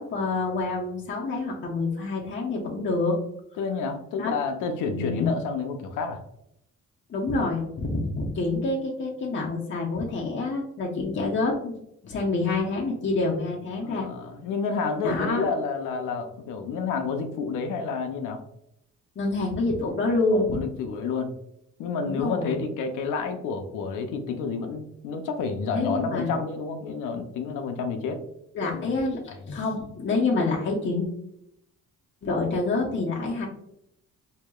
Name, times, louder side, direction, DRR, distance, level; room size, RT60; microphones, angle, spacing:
voice 1, 0.0-3.2 4.2-4.3 4.9-5.3 7.1-11.7 12.0-14.1 15.0-15.5 19.2-20.6 22.1-22.5 25.7-26.3 28.5-31.1 32.2-33.5, left 3 dB, 40° left, -3 dB, 0.9 m, -27 dB
voice 2, 3.6-6.2 13.8-18.4 20.3-21.3 21.8-28.2 28.7-28.9, left 5 dB, 85° left, 6 dB, 0.6 m, -30 dB
4.5 x 2.8 x 2.3 m, 0.79 s
cardioid pair, 90°, 30 cm